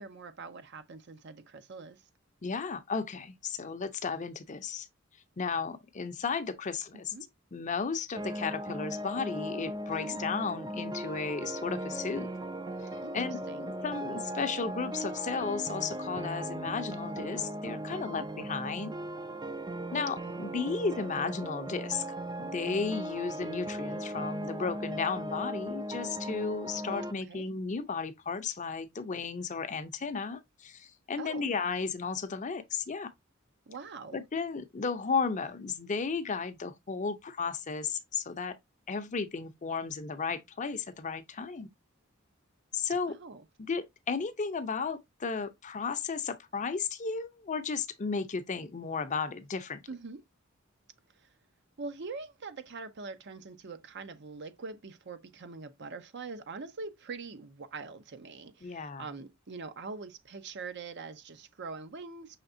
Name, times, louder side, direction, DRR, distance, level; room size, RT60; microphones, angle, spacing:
voice 1, 0.0-2.0 6.9-7.3 10.0-10.2 13.0-13.7 18.0-18.3 20.2-20.6 27.3-27.5 31.2-31.5 33.7-34.2 43.1-43.4 49.9-50.2 51.1-51.3 51.8-62.4, right 4 dB, 60° right, 0.7 m, -43 dB
voice 2, 2.4-4.9 5.4-7.1 7.5-12.3 13.1-18.9 19.9-22.1 22.4-33.1 34.1-38.6 38.9-41.7 42.7-43.1 43.7-49.8 58.6-59.1, left 5 dB, 40° left, 0.6 m, -34 dB
sound 1, 8.1-27.1, right 1 dB, 20° right, 0.4 m, -38 dB
5.8 x 3.4 x 2.6 m
head